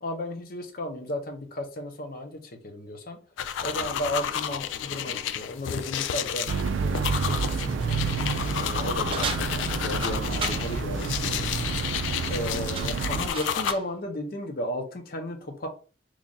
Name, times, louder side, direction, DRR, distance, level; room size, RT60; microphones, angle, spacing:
voice 1, 0.0-3.2 3.6-8.0 8.5-11.7 12.3-15.7, equal, 50° left, 5 dB, 0.7 m, -35 dB
sound 1, 3.4-13.7, left 9 dB, 85° left, 0.3 m, -31 dB
sound 2, 6.5-13.3, right 4 dB, 90° right, 0.4 m, -29 dB
sound 3, 9.1-10.7 12.1-12.4 12.7-13.9, right 5 dB, 30° right, 0.4 m, -35 dB
3.1 x 2.5 x 3.8 m, 0.37 s
head